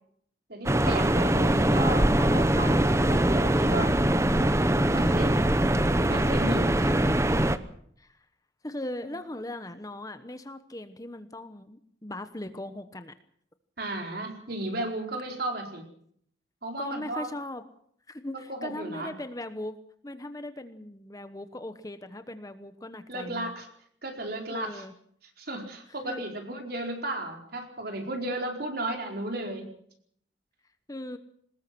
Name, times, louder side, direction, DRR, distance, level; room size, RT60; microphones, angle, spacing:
voice 1, 0.5-3.9 4.9-5.5 6.1-6.9 13.8-15.8 16.6-17.3 18.5-19.1 23.1-23.7 24.0-24.8 25.4-29.7, right 1 dB, 50° right, 3 dB, 4.5 m, -34 dB
sound 1, 0.7-7.6, right 1 dB, 15° right, 0.9 m, -23 dB
voice 2, 8.6-13.1 16.8-17.6 18.1-19.8 20.0-23.5 24.5-24.9 26.0-26.2 30.9-31.2, left 1 dB, 20° left, 9 dB, 1.0 m, -39 dB
22.5 x 20.0 x 6.1 m, 0.66 s
head